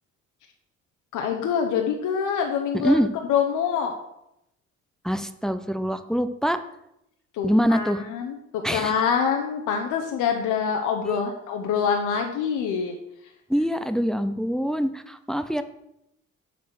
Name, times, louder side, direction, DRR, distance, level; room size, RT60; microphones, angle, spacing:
voice 1, 1.1-2.9 3.3-3.9 7.3-13.0 13.2-13.3, left 7 dB, 90° left, 3 dB, 0.8 m, -25 dB
voice 2, 5.0-6.6 7.4-8.0 8.6-8.9 11.0-11.2 13.5-15.6, equal, ahead, 9 dB, 0.5 m, -24 dB
7.4 x 4.2 x 6.1 m, 0.83 s
cardioid pair, 90°, 30 cm